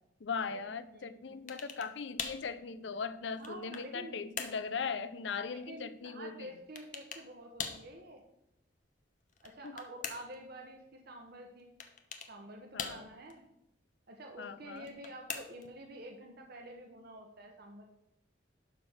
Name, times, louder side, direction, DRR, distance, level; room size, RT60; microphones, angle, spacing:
voice 1, 0.2-6.5 9.6-9.8 12.7-13.1 14.4-14.9, left 5 dB, 70° left, 13 dB, 0.6 m, -39 dB
sound 1, 1.5-1.9 2.2-2.5 3.1-3.9 4.4-4.7 6.8-7.3 7.6-7.9 9.3-10.4 11.8-12.3 12.8-13.3 14.8-15.7, left 6 dB, 45° left, 1.0 m, -42 dB
voice 2, 3.4-4.1 5.4-8.2 9.4-11.7 12.3-13.4 14.1-17.9, right 1 dB, 55° right, 3 dB, 1.2 m, -49 dB
12.0 x 4.1 x 6.5 m, 0.83 s
head